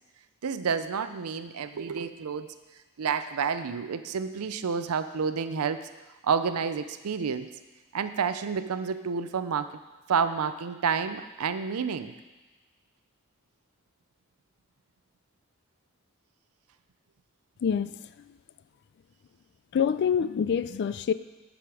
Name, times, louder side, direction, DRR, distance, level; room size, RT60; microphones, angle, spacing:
voice 1, 0.4-2.5 3.0-5.9 6.2-7.5 7.9-9.7 10.1-12.2, right 6 dB, 75° right, 11 dB, 0.5 m, -29 dB
voice 2, 17.6-18.0 19.7-21.1, left 7 dB, 50° left, 14 dB, 0.3 m, -26 dB
12.0 x 5.0 x 4.8 m, 1.2 s
head